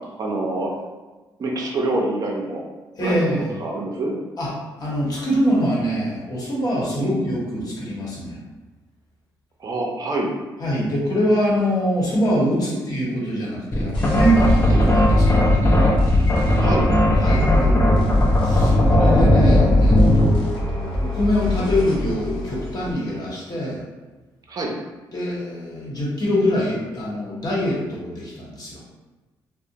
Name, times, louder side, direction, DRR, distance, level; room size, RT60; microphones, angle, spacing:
voice 1, 0.2-0.7 1.4-2.6 3.0-4.2 7.0-7.2 9.6-10.3 12.6-12.8 16.6-16.9 24.5-24.7, right 2 dB, 45° right, -1 dB, 0.5 m, -26 dB
voice 2, 3.0-3.5 4.4-4.5 4.8-8.4 10.6-16.0 17.2-23.8 25.1-28.8, equal, 45° left, -5 dB, 1.0 m, -24 dB
sound 1, 13.7-20.4, left 1 dB, 25° left, 0.6 m, -17 dB
sound 2, 13.9-22.9, left 2 dB, 65° left, 0.8 m, -25 dB
2.4 x 2.0 x 2.8 m, 1.2 s
supercardioid pair, 70°, 9 cm